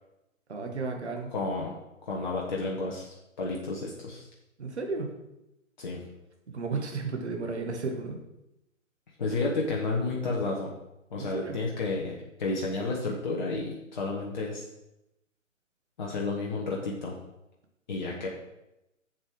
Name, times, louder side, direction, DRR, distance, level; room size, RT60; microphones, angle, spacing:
voice 1, 0.5-1.3 4.6-5.1 6.5-8.2 11.2-11.6, right 4 dB, 55° right, 2 dB, 2.0 m, -33 dB
voice 2, 1.3-1.7 2.1-4.3 5.8-6.0 9.2-10.7 11.1-14.6 16.0-17.1 17.9-18.3, left 3 dB, 35° left, -2 dB, 1.2 m, -31 dB
7.5 x 7.3 x 4.8 m, 0.91 s
figure-of-eight pair, 135°, 40 cm